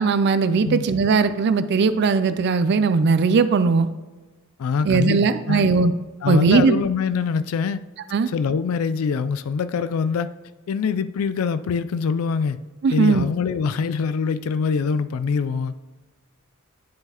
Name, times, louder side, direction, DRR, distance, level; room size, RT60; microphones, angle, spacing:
voice 1, 0.0-3.9 4.8-5.9 6.3-6.8 8.1-8.3 12.8-13.3, right 4 dB, 55° right, 12 dB, 0.4 m, -19 dB
voice 2, 4.6-5.7 6.2-7.8 8.3-10.3 10.7-12.6 12.9-15.7, left 5 dB, 90° left, 13 dB, 0.4 m, -24 dB
10.5 x 3.8 x 2.9 m, 1.2 s
head